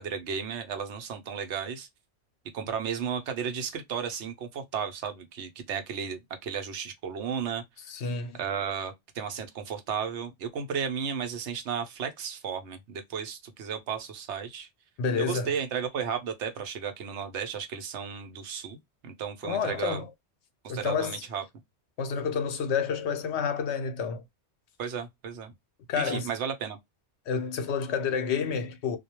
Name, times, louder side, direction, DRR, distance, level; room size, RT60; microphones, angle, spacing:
voice 1, 0.0-1.9 2.5-7.6 8.4-14.7 15.2-18.8 19.0-20.0 20.6-21.4 24.8-25.5 26.0-26.8, right 7 dB, 85° right, 1.0 m, -34 dB
voice 2, 7.9-8.4 15.0-15.5 19.4-20.1 20.7-21.2 22.0-24.2 25.9-26.3 27.3-29.0, left 6 dB, 75° left, 0.9 m, -29 dB
2.3 x 2.1 x 2.8 m
omnidirectional pair, 1.2 m